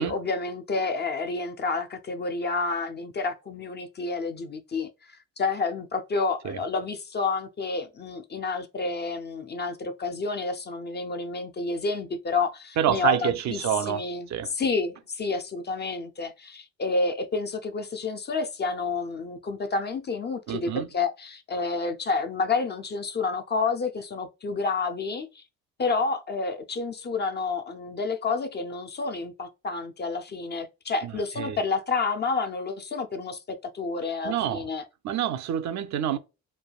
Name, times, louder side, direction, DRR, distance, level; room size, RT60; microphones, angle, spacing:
voice 1, 0.0-25.4 25.8-34.8, left 4 dB, 30° left, 0.4 m, -29 dB
voice 2, 12.8-14.0 14.3-14.5 20.5-20.9 31.0-31.1 31.4-31.6 34.2-34.7 35.0-36.2, right 9 dB, 55° right, 0.4 m, -27 dB
3.2 x 2.2 x 2.3 m
supercardioid pair, 65°, 35 cm